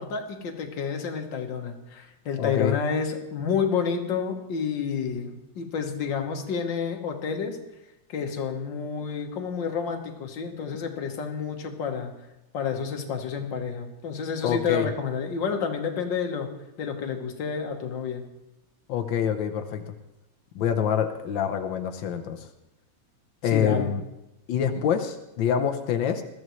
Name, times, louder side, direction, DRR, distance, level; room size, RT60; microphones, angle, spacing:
voice 1, 0.0-7.6 8.1-12.1 12.5-16.5 16.8-18.2 23.5-23.9, left 6 dB, 50° left, 4 dB, 1.6 m, -29 dB
voice 2, 2.4-2.7 14.4-14.9 18.9-19.8 20.5-22.5 23.4-24.0 24.5-26.2, left 8 dB, 85° left, 6 dB, 1.0 m, -26 dB
21.0 x 14.0 x 3.2 m, 0.93 s
omnidirectional pair, 3.3 m